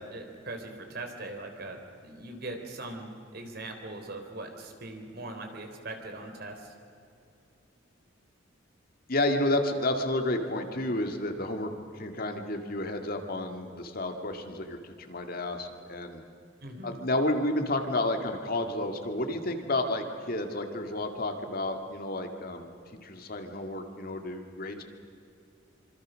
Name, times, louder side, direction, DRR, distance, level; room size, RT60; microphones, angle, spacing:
voice 1, 0.0-6.7 16.6-17.0, right 2 dB, 55° right, 4 dB, 3.8 m, -41 dB
voice 2, 9.1-16.2 16.8-22.7 23.0-24.8, left 1 dB, 50° left, 5 dB, 2.3 m, -31 dB
26.0 x 26.0 x 6.4 m, 2.6 s
head